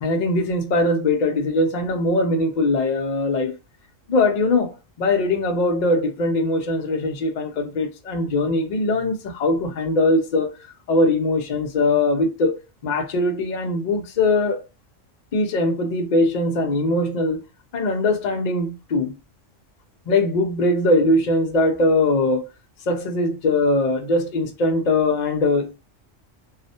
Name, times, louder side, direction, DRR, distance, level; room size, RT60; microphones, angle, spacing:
voice 1, 0.0-3.5 4.1-10.5 10.9-14.6 15.3-17.4 17.7-19.2 20.1-22.5 22.9-25.8, left 2 dB, 70° left, 0.4 m, -21 dB
2.3 x 2.0 x 2.7 m
omnidirectional pair, 1.3 m